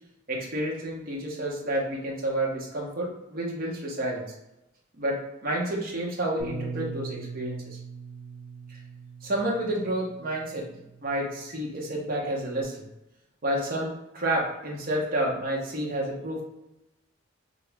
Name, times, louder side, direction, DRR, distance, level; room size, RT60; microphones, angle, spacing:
voice 1, 0.3-4.3 5.0-7.8 8.7-8.8 9.2-10.7 11.0-12.8 13.4-16.4, right 1 dB, 50° right, -3 dB, 1.0 m, -30 dB
Bass guitar, 6.4-12.6, right 5 dB, 30° left, 1.2 m, -42 dB
2.9 x 2.6 x 3.4 m, 0.90 s
head